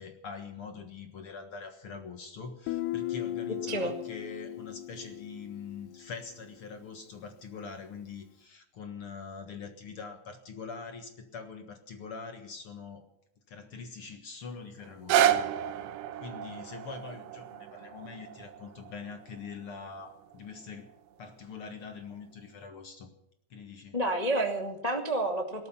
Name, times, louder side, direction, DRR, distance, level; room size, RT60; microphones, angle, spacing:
voice 1, 0.0-13.0 13.5-15.6 16.2-20.9 21.2-23.1 23.5-24.0, left 5 dB, 60° left, 6 dB, 1.4 m, -43 dB
Guitar, 2.7-6.3, left 13 dB, 80° left, 2.7 m, -37 dB
sound 1, 14.8-20.9 21.6-21.7, right 10 dB, 90° right, 3.2 m, -31 dB
voice 2, 23.9-25.7, right 1 dB, 25° left, 2 dB, 0.8 m, -29 dB
18.0 x 13.5 x 5.8 m, 0.79 s
omnidirectional pair, 4.7 m